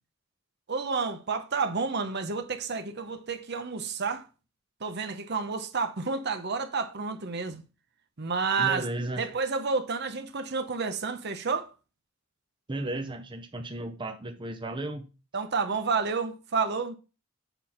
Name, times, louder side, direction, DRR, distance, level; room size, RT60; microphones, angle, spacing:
voice 1, 0.7-4.3 4.8-7.6 8.2-8.9 9.2-11.7 15.3-16.9, right 4 dB, 55° right, 0.8 m, -30 dB
voice 2, 8.6-9.2 12.7-15.1, right 2 dB, 25° right, 0.8 m, -34 dB
7.0 x 4.4 x 5.6 m
head